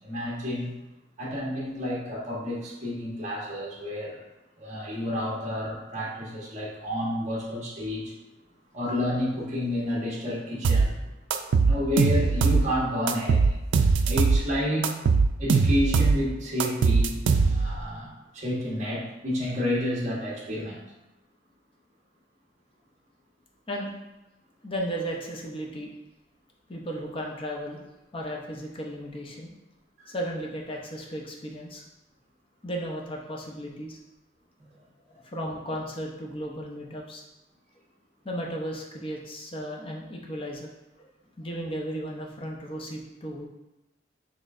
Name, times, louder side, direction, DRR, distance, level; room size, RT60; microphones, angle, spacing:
voice 1, 0.0-0.7 1.2-4.2 4.6-8.1 8.7-11.0 11.6-13.6 14.0-14.9 15.4-17.2 17.4-20.8 30.0-30.1 34.6-34.7, left 1 dB, 40° right, -5 dB, 1.3 m, -30 dB
sound 1, 10.6-10.9 11.3-12.7 13.1-14.4 14.8-16.2 16.6-17.8, right 4 dB, 75° right, 0.4 m, -21 dB
voice 2, 24.6-25.9 26.7-27.8 28.1-29.5 30.1-31.8 32.6-34.0 35.1-37.2 38.2-40.7 41.0-41.1 41.4-43.5, equal, 30° left, -1 dB, 0.7 m, -35 dB
6.2 x 3.1 x 2.5 m, 0.98 s
head